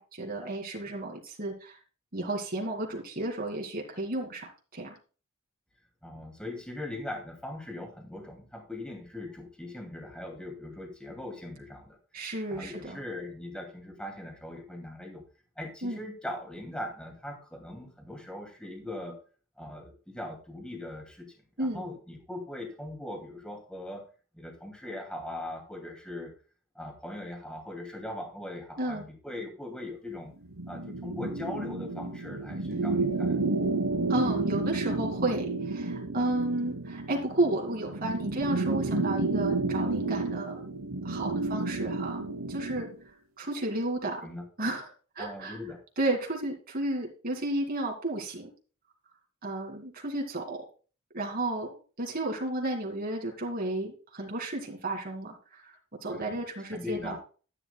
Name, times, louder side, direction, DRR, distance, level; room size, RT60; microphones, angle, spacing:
voice 1, 0.0-1.8 2.1-5.0 12.1-13.0 15.8-16.0 21.6-21.9 28.8-29.0 34.1-40.6 41.0-42.2 42.5-42.9 43.4-44.2 44.6-45.6 46.0-48.5 49.4-50.6 51.1-55.6 56.0-57.2, right 2 dB, 45° right, 1 dB, 2.5 m, -32 dB
voice 2, 6.0-12.0 12.5-15.2 15.6-19.2 19.6-24.1 24.3-26.3 26.7-30.3 30.7-33.4 44.2-44.4 45.2-45.8 56.1-56.4 56.7-57.2, left 1 dB, 5° left, 2 dB, 2.6 m, -40 dB
sound 1, 30.5-42.9, right 2 dB, 90° right, 1.1 m, -31 dB
12.5 x 10.5 x 2.3 m, 0.36 s
head